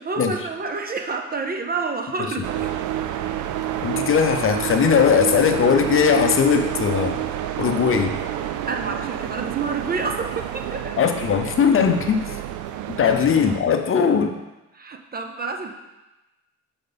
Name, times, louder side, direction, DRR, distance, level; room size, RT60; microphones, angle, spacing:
voice 1, 0.0-2.7 8.7-11.0 13.0-13.1 14.7-15.7, right 4 dB, 30° right, 4 dB, 0.7 m, -29 dB
sound 1, 2.4-13.6, right 11 dB, 75° right, 0.5 m, -28 dB
voice 2, 3.8-7.2 7.6-8.2 11.0-12.4 13.0-14.4, left 7 dB, 45° left, 6 dB, 0.6 m, -19 dB
6.6 x 3.8 x 3.9 m, 1.0 s
cardioid pair, 90°, 30 cm